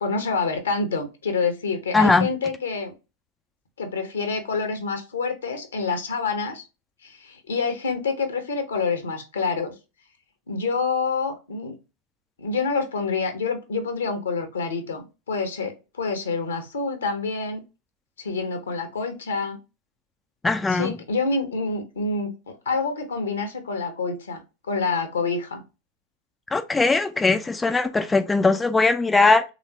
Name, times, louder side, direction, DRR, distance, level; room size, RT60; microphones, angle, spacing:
voice 1, 0.0-2.9 3.8-6.7 7.0-9.7 10.5-11.7 12.4-17.6 18.2-19.6 20.7-24.4 24.7-25.6, left 4 dB, 70° left, 0.9 m, -27 dB
voice 2, 1.9-2.3 20.4-20.9 26.5-29.4, left 3 dB, 10° left, 0.4 m, -20 dB
3.5 x 3.0 x 2.7 m
figure-of-eight pair, 90°, 0 cm